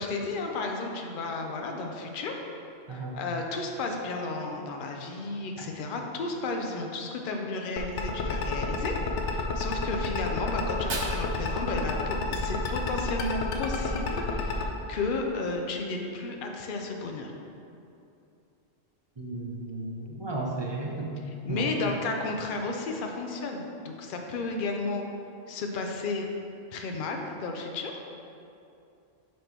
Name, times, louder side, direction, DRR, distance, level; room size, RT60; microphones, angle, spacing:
voice 1, 0.0-2.3 2.9-17.3 21.4-25.0 25.5-26.3 26.7-27.9, left 3 dB, 55° left, 2 dB, 0.7 m, -33 dB
sound 1, 7.8-14.7, left 5 dB, 90° left, 0.9 m, -30 dB
Fire, 10.6-12.6, right 3 dB, 85° right, 1.1 m, -39 dB
voice 2, 19.2-21.1 21.5-21.6, right 2 dB, 35° right, -3 dB, 0.5 m, -34 dB
5.1 x 4.3 x 4.4 m, 2.7 s
omnidirectional pair, 1.1 m